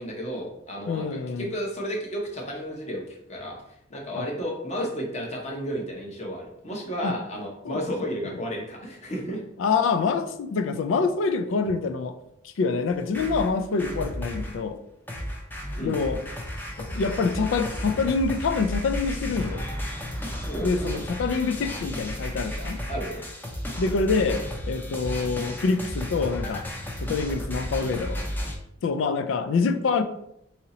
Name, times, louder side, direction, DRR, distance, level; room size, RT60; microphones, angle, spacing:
voice 1, 0.0-3.6 3.9-9.4 15.7-16.0 20.3-20.9 22.9-23.2, equal, 35° left, 0 dB, 0.8 m, -32 dB
voice 2, 0.9-1.5 4.2-4.3 7.0-7.1 7.6-7.8 9.6-12.2 12.6-14.8 15.8-16.2 16.8-19.7 20.6-22.8 23.8-26.7 27.0-28.2 28.8-30.0, left 4 dB, 90° left, 9 dB, 0.3 m, -26 dB
sound 1, 12.9-14.6 15.1-28.6, equal, 10° left, 0.5 m, -33 dB
2.8 x 2.7 x 4.0 m, 0.78 s
head